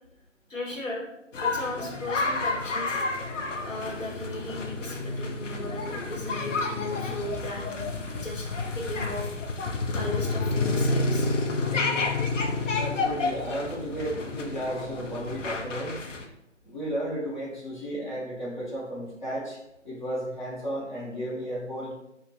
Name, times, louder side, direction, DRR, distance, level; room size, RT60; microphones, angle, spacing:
voice 1, 0.5-1.1 1.4-3.0 3.6-7.9 8.2-8.5 8.7-9.3 9.9-11.3 17.8-17.9, left 1 dB, 90° left, -2 dB, 1.0 m, -36 dB
sound 1, 1.3-16.2, left 3 dB, 75° left, 0.5 m, -30 dB
voice 2, 12.8-16.0 16.6-19.6 19.8-21.9, equal, 40° left, -6 dB, 0.9 m, -33 dB
2.4 x 2.1 x 3.1 m, 0.84 s
figure-of-eight pair, 170°, 38 cm